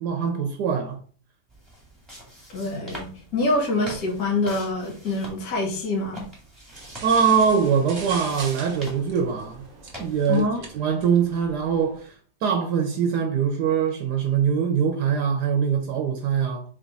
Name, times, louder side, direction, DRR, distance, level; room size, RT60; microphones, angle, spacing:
voice 1, 0.0-1.0 7.0-9.6 10.0-10.5 10.7-12.1 12.4-16.6, right 7 dB, 75° right, 1.2 m, -23 dB
sound 1, 1.5-10.3, equal, ahead, 1.9 m, -44 dB
voice 2, 2.5-6.2 10.3-10.6, left 2 dB, 65° left, 1.7 m, -25 dB
sound 2, 6.7-12.0, right 3 dB, 40° right, 0.8 m, -41 dB
3.7 x 3.5 x 3.9 m
omnidirectional pair, 1.8 m